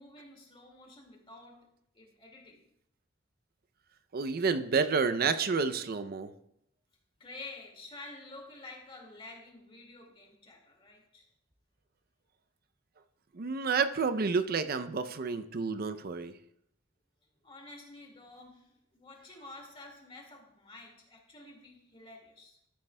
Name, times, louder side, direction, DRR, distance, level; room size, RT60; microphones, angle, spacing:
voice 1, 0.0-1.7 1.9-2.6 7.2-11.3 17.4-22.6, left 2 dB, 30° left, 1 dB, 2.0 m, -50 dB
voice 2, 4.1-6.3 13.3-16.3, right 5 dB, 55° right, 10 dB, 0.5 m, -30 dB
13.0 x 9.5 x 2.2 m, 0.76 s
head